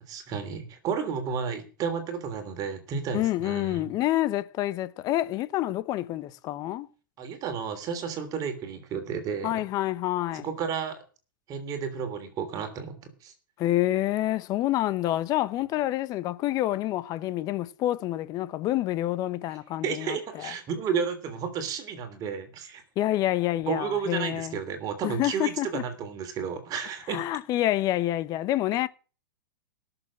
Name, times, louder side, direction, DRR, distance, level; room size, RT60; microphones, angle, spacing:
voice 1, 0.1-3.9 7.2-9.6 10.3-11.0 11.5-13.3 19.8-22.8 23.7-27.2, right 6 dB, 35° right, 3.1 m, -32 dB
voice 2, 3.1-6.9 9.4-10.5 13.6-20.5 23.0-24.6 25.0-25.8 27.1-28.9, left 14 dB, 35° left, 1.0 m, -28 dB
18.0 x 7.0 x 7.2 m
hypercardioid pair, 125°, 11 cm